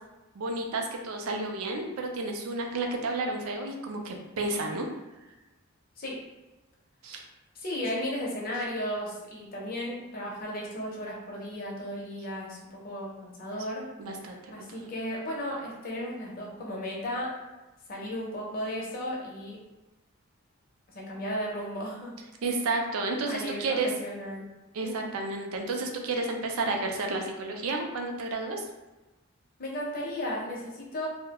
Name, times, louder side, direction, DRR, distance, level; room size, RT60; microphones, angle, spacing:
voice 1, 0.4-4.9 7.0-7.3 14.0-14.9 22.4-23.9 24.7-28.7, right 3 dB, 70° right, 2 dB, 0.4 m, -31 dB
voice 2, 7.6-12.6 12.8-13.9 14.5-17.4 17.9-19.6 20.9-22.1 23.3-24.5 24.8-25.0 29.6-31.1, equal, 40° left, -3 dB, 0.5 m, -35 dB
2.3 x 2.1 x 2.8 m, 1.1 s
head